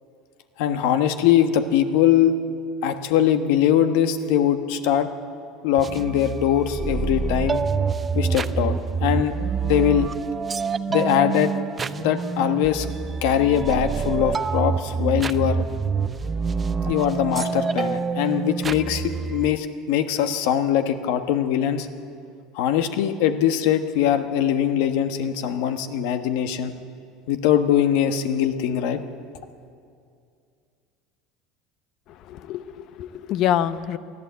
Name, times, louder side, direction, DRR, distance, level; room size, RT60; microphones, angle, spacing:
voice 1, 0.6-2.3 2.8-5.1 5.6-7.6 8.1-9.3 9.6-10.1 10.9-11.5 12.0-12.9 13.2-15.6 16.9-21.9 22.5-26.7 27.3-29.0, left 10 dB, 75° left, 8 dB, 1.3 m, -21 dB
sound 1, 5.8-19.5, right 5 dB, 20° right, 0.6 m, -27 dB
voice 2, 32.3-34.0, left 10 dB, 50° left, 14 dB, 0.7 m, -25 dB
23.0 x 14.0 x 8.2 m, 2.4 s
cardioid pair, 145°, 0 cm